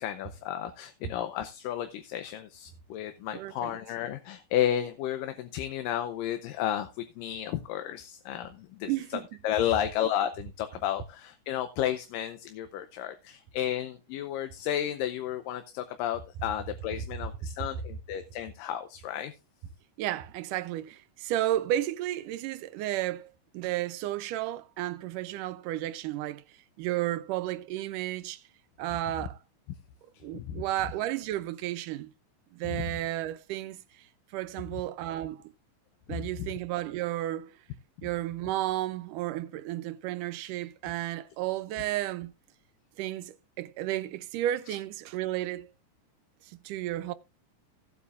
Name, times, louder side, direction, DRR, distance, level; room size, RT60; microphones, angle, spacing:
voice 1, 0.0-19.3 29.2-29.3 30.3-30.6 32.6-32.8 36.1-36.5, left 11 dB, 80° left, 2.4 m, -32 dB
voice 2, 3.3-3.7 8.9-9.3 20.0-26.4 26.8-28.4 28.8-29.4 30.2-32.1 32.5-34.1 34.3-35.4 36.1-37.6 38.0-42.3 43.0-45.7 46.5-47.1, right 14 dB, 80° right, 2.1 m, -33 dB
17.0 x 8.4 x 2.4 m
omnidirectional pair, 3.9 m